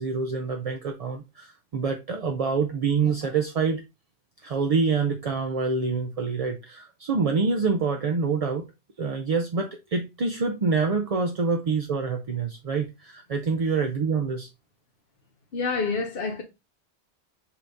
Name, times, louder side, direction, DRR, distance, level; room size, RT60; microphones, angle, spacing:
voice 1, 0.0-3.8 4.4-8.7 9.0-14.5, right 4 dB, 45° right, 0.5 m, -26 dB
voice 2, 15.5-16.4, left 4 dB, 60° left, 1.1 m, -27 dB
5.6 x 2.7 x 3.4 m
omnidirectional pair, 1.1 m